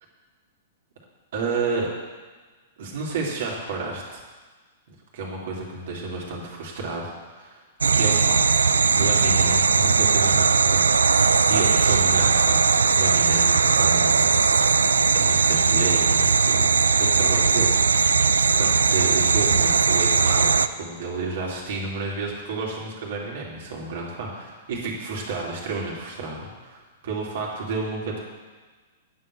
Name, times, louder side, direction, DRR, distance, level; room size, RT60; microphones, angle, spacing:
voice 1, 1.3-1.9 2.8-4.2 4.9-7.6 7.9-14.3 15.1-18.2 18.6-28.2, right 3 dB, 65° right, -3 dB, 2.8 m, -31 dB
sound 1, 7.8-20.7, right 5 dB, 85° right, 0.3 m, -19 dB
9.5 x 5.6 x 7.6 m, 1.4 s
hypercardioid pair, 110°, 0 cm